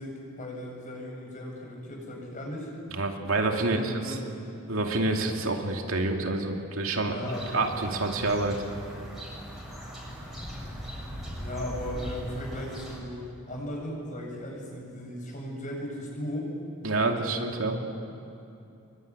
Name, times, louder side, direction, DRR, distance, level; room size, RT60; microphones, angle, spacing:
voice 1, 0.0-2.7 3.6-4.3 7.0-7.7 11.4-16.5 17.0-17.3 17.8-17.9, left 1 dB, 35° left, -1 dB, 7.8 m, -37 dB
voice 2, 2.9-4.2 4.7-7.1 7.5-8.6 16.8-17.8, right 2 dB, 75° right, 2 dB, 2.6 m, -27 dB
sound 1, 7.3-13.0, equal, ahead, 7.2 m, -39 dB
26.5 x 23.0 x 9.8 m, 2.8 s
head